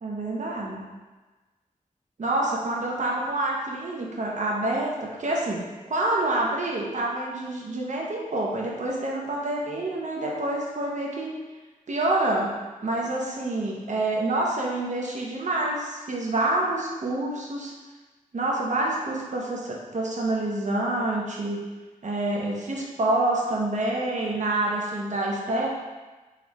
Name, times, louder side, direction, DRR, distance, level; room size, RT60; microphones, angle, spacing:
voice 1, 0.0-0.8 2.2-11.3 11.9-12.5 12.8-17.7 18.3-21.6 22.0-25.7, right 2 dB, 60° right, -3 dB, 0.8 m, -27 dB
4.1 x 3.2 x 3.0 m, 1.2 s
wide cardioid pair, 105°, 14 cm